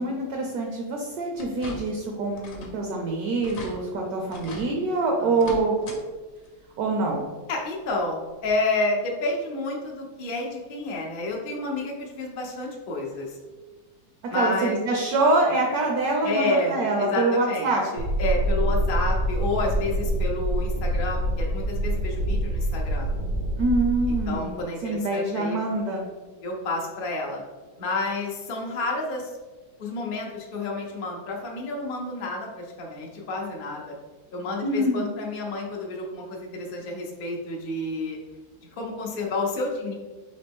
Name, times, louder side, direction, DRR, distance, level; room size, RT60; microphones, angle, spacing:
voice 1, 0.0-5.9 6.8-7.2 14.3-17.8 23.6-26.0 34.6-35.1, right 2 dB, 70° right, 1 dB, 0.9 m, -25 dB
sound 1, 1.4-2.1 2.4-2.8 3.1-3.2 3.4-3.7 4.3-4.7 5.3-6.0 6.4-6.5 7.9-8.0 8.5-8.6, left 1 dB, 60° left, 0.9 m, -39 dB
voice 2, 5.2-5.5 7.5-13.4 14.3-14.8 16.2-23.1 24.3-25.6 26.4-27.4 27.8-29.3 29.8-33.9 34.3-38.2 38.8-39.9, left 2 dB, 85° left, -1 dB, 0.4 m, -30 dB
sound 2, 18.0-24.4, right 1 dB, 90° right, 1.4 m, -26 dB
4.1 x 3.0 x 3.4 m, 1.3 s
omnidirectional pair, 2.0 m